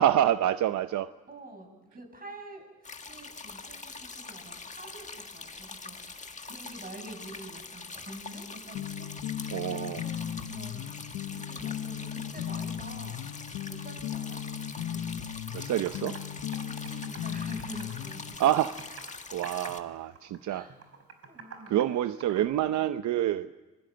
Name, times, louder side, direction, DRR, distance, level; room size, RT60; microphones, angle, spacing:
voice 1, 0.0-1.1 9.5-10.0 15.5-16.2 18.4-18.8 19.3-20.7 21.7-23.5, right 12 dB, 70° right, 0.8 m, -27 dB
voice 2, 1.3-2.6 2.9-9.1 9.4-13.3 13.7-15.0 16.7-18.4 18.9-19.0 20.4-20.8 21.3-21.7, right 1 dB, 30° right, 7.9 m, -47 dB
sound 1, 2.8-19.8, left 4 dB, 25° left, 1.7 m, -44 dB
sound 2, 8.7-18.3, left 10 dB, 90° left, 1.2 m, -37 dB
Computer keyboard, 15.4-15.5 15.9-16.2 16.5-18.1 18.4-19.2 19.4-19.8 20.2-22.5, right 6 dB, 50° right, 4.7 m, -47 dB
25.0 x 21.5 x 7.7 m
cardioid pair, 90°, 30 cm